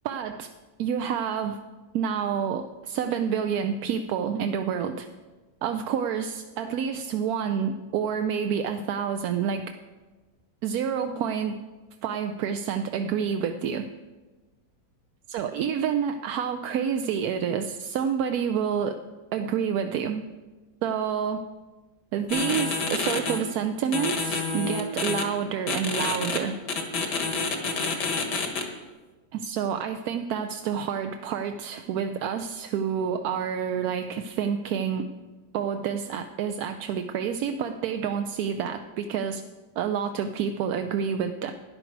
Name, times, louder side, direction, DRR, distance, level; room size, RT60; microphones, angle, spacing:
voice 1, 0.0-0.5 0.8-1.6 1.9-5.1 5.6-9.7 10.6-11.6 12.0-13.8 15.3-19.0 19.3-20.2 20.8-21.4 22.1-26.6 29.3-35.1 35.5-39.4 39.8-41.5, right 7 dB, 70° right, 7 dB, 1.0 m, -28 dB
sound 1, 22.3-23.4 23.9-25.2 25.7-26.4 26.7-28.6, left 4 dB, 75° left, 1.9 m, -28 dB
13.0 x 10.5 x 4.6 m, 1.2 s
omnidirectional pair, 1.8 m